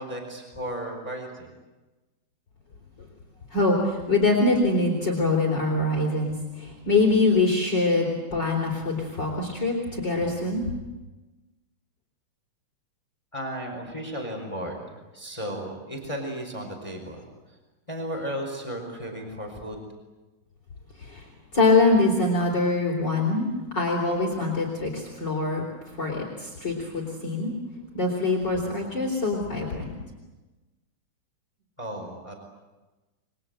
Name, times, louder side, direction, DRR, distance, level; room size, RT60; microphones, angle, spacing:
voice 1, 0.0-1.5 13.3-17.2 17.5-17.6 17.9-19.9 31.8-32.3, equal, 10° left, 3 dB, 4.5 m, -34 dB
voice 2, 3.5-10.7 21.0-21.3 21.5-25.6 26.0-27.5 27.9-29.9, left 3 dB, 35° left, -2 dB, 4.5 m, -24 dB
29.5 x 22.5 x 7.9 m, 1.2 s
omnidirectional pair, 3.6 m